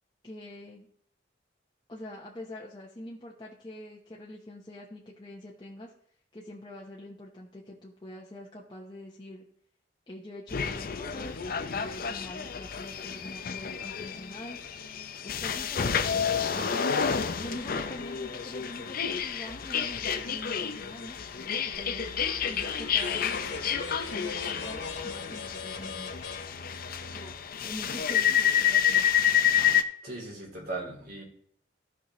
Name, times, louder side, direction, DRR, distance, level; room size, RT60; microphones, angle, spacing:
voice 1, 0.2-0.9 1.9-5.9 6.3-9.4 10.1-11.4 11.7-14.6 15.2-16.9 17.4-22.1 22.4-23.8 24.1-26.2 27.1-27.3 27.6-29.0, left 1 dB, 25° left, -4 dB, 1.0 m, -44 dB
sound 1, 10.5-29.8, left 8 dB, 55° left, 0.6 m, -29 dB
sound 2, 21.7-27.3, left 4 dB, 70° left, 1.2 m, -41 dB
voice 2, 30.0-31.2, right 2 dB, 60° right, -2 dB, 3.0 m, -38 dB
15.0 x 5.8 x 3.1 m, 0.63 s
head